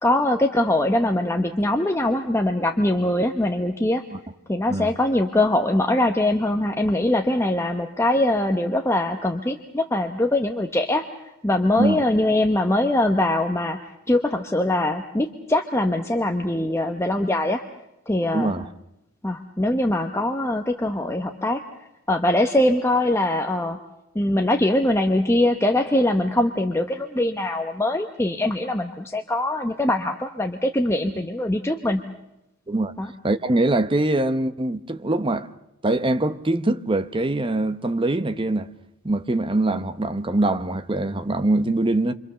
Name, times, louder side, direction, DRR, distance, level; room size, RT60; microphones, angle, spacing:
voice 1, 0.0-4.0 4.5-11.0 11.4-17.6 18.1-18.5 19.2-21.6 22.1-23.8 24.1-32.0 33.0-33.1, left 1 dB, 15° left, 1.0 m, -22 dB
voice 2, 18.3-18.7 32.7-32.9 33.2-35.5 35.8-38.7 39.0-42.1, right 2 dB, 25° right, 0.9 m, -23 dB
27.0 x 25.5 x 6.8 m
head